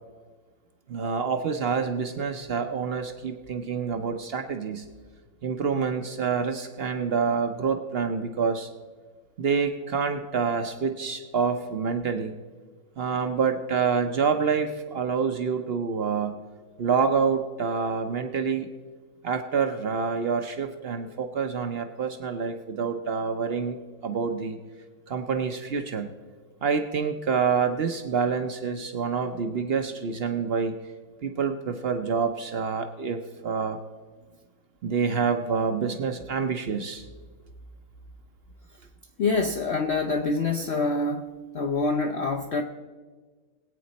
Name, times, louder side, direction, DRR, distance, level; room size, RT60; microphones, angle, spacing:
voice 1, 0.9-4.8 5.4-8.7 9.4-12.3 13.0-16.4 16.8-18.7 19.2-23.8 24.0-24.6 25.1-26.1 26.6-30.7 31.2-33.8 34.8-37.0, right 5 dB, 75° right, 6 dB, 0.5 m, -27 dB
voice 2, 39.2-42.6, left 3 dB, 75° left, 5 dB, 0.6 m, -26 dB
21.5 x 8.7 x 4.1 m, 1.4 s
omnidirectional pair, 2.0 m